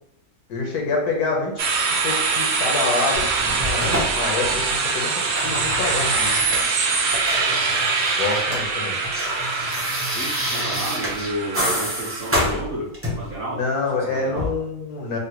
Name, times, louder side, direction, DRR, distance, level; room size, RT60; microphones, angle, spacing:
voice 1, 0.5-1.6 2.0-6.4 8.2-9.0 13.5-15.2, left 3 dB, 85° left, 1 dB, 1.3 m, -26 dB
sound 1, 1.6-12.6, right 4 dB, 75° right, 1.0 m, -24 dB
sound 2, 3.1-4.8 5.1-8.7 8.9-13.4 14.3-14.5, equal, 20° right, 0.3 m, -27 dB
voice 2, 10.1-13.6 14.1-14.5, equal, 50° right, -6 dB, 0.7 m, -31 dB
3.8 x 2.1 x 2.8 m, 0.77 s
omnidirectional pair, 1.6 m